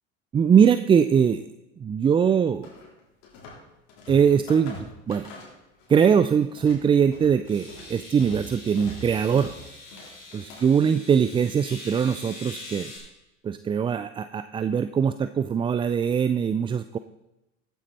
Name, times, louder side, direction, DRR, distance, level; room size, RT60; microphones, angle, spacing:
voice 1, 0.3-1.5 1.8-2.7 4.1-4.8 5.1-5.3 5.9-9.5 10.3-12.9 13.4-17.0, right 7 dB, 15° right, 11 dB, 0.3 m, -22 dB
sound 1, 2.6-3.6 3.9-6.1 6.4-10.8, left 2 dB, 65° left, 4.1 m, -43 dB
sound 2, 7.4-13.0, left 2 dB, 90° left, 4.2 m, -43 dB
14.5 x 9.1 x 4.2 m, 0.95 s
hypercardioid pair, 80°, 37 cm